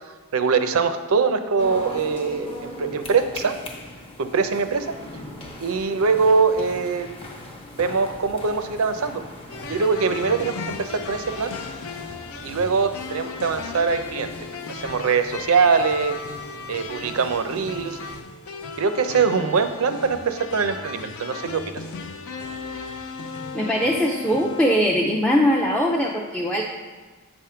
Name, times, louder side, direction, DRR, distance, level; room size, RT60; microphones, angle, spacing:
voice 1, 0.3-3.6 4.2-4.9 5.6-7.1 7.7-9.2 9.7-11.5 12.4-14.3 14.7-16.2 16.7-18.0 18.8-21.8, right 5 dB, 70° right, 9 dB, 0.5 m, -22 dB
sound 1, 1.6-18.2, left 1 dB, 25° left, 0.8 m, -40 dB
sound 2, 9.5-24.8, left 4 dB, 70° left, 0.5 m, -36 dB
voice 2, 23.5-26.6, equal, 5° left, -3 dB, 0.4 m, -21 dB
8.0 x 3.6 x 5.7 m, 1.4 s
head